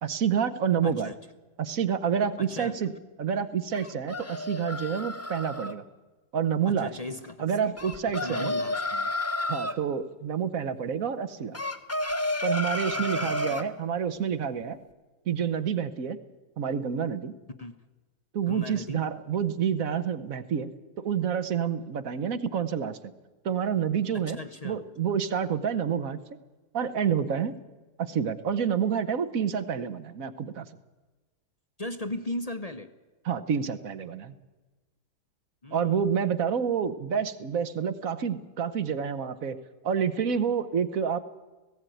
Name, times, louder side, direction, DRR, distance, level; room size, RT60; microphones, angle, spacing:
voice 1, 0.0-1.1 1.6-2.9 3.2-5.8 6.3-6.9 7.4-8.5 9.5-11.6 12.4-14.8 15.3-16.2 16.6-17.4 18.3-23.1 23.4-24.4 24.6-26.2 26.7-27.6 28.0-30.7 33.2-34.3 35.7-39.6 39.8-41.2, right 7 dB, 60° right, 12 dB, 1.3 m, -28 dB
voice 2, 0.8-1.2 2.4-2.8 6.6-7.7 8.0-9.1 12.9-13.6 17.6-17.7 18.5-19.1 24.3-24.8 31.8-32.9 35.6-36.0, left 2 dB, 35° left, 9 dB, 0.7 m, -37 dB
sound 1, 3.7-5.7 7.8-9.8 11.5-13.7, left 1 dB, 10° left, 0.9 m, -31 dB
18.5 x 16.5 x 9.2 m, 1.2 s
omnidirectional pair, 1.7 m